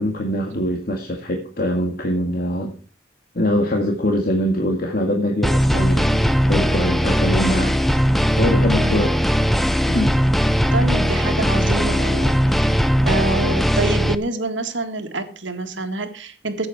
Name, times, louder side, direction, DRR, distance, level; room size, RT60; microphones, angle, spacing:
voice 1, 0.0-2.7 3.3-7.8 8.4-9.1 9.7-10.1, equal, 50° left, 1 dB, 2.0 m, -23 dB
sound 1, 5.4-14.1, equal, ahead, 0.6 m, -19 dB
voice 2, 8.7-9.1 10.7-16.7, right 2 dB, 85° right, 7 dB, 1.9 m, -26 dB
14.0 x 8.8 x 4.9 m, 0.38 s
head